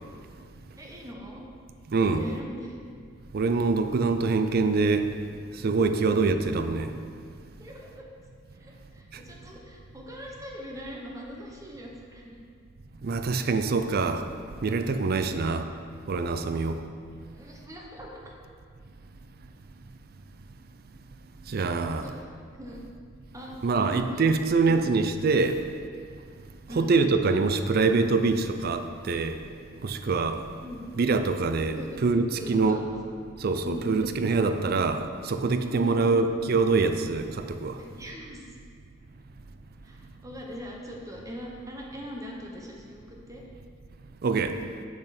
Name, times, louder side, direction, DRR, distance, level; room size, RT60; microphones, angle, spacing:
voice 1, 0.7-1.4 2.0-2.8 7.6-8.1 8.5-12.4 17.3-18.3 21.9-22.9 23.3-24.3 24.7-24.8 25.5-25.6 26.7-26.9 30.6-30.8 31.8-32.0 32.3-32.8 33.6-34.2 35.5-36.2 37.8-38.6 39.8-43.4, equal, 15° right, -1 dB, 1.1 m, -41 dB
voice 2, 1.9-2.3 3.3-5.1 5.6-6.9 13.0-14.2 14.6-15.7 16.1-16.8 21.5-22.1 23.6-25.6 26.8-29.4 29.8-30.4 31.0-32.8 33.4-37.8 44.2-44.6, right 4 dB, 50° right, 8 dB, 0.4 m, -25 dB
7.9 x 6.7 x 4.2 m, 2.1 s
head